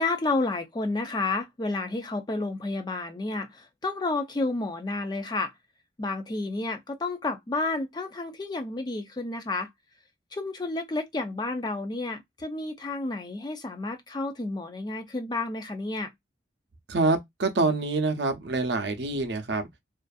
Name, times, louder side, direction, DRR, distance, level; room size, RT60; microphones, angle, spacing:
voice 1, 0.0-5.5 6.0-9.7 10.3-16.1, left 2 dB, 25° left, 0.4 m, -30 dB
voice 2, 16.9-19.7, right 3 dB, 65° right, 0.6 m, -26 dB
2.5 x 2.5 x 2.3 m
head